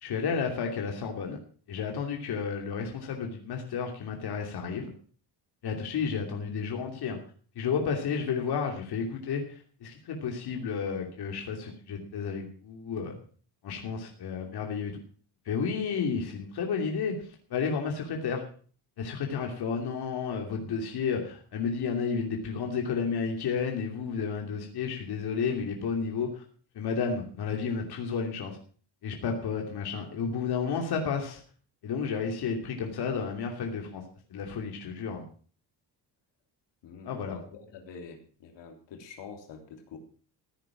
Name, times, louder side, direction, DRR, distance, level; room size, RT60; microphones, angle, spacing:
voice 1, 0.0-1.4 1.7-4.9 5.6-7.2 7.5-13.1 13.6-14.9 15.4-18.5 19.0-26.4 26.7-28.6 29.0-31.4 31.8-34.0 34.3-35.2 37.0-37.4, left 6 dB, 60° left, 2 dB, 2.9 m, -32 dB
voice 2, 36.8-40.0, left 5 dB, 80° left, 4 dB, 3.3 m, -46 dB
15.0 x 9.9 x 5.9 m, 0.42 s
cardioid pair, 145°, 42 cm